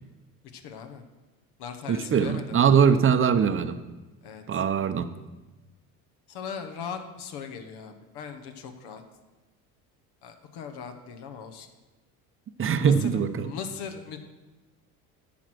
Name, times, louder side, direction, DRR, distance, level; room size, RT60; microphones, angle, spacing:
voice 1, 0.5-1.0 1.6-2.5 4.2-4.6 6.3-9.0 10.2-11.7 12.8-14.2, left 6 dB, 65° left, 6 dB, 1.2 m, -39 dB
voice 2, 1.9-3.8 4.5-5.1 12.6-13.5, right 7 dB, 30° right, 11 dB, 0.8 m, -22 dB
10.0 x 6.3 x 6.1 m, 1.1 s
supercardioid pair, 80°, 42 cm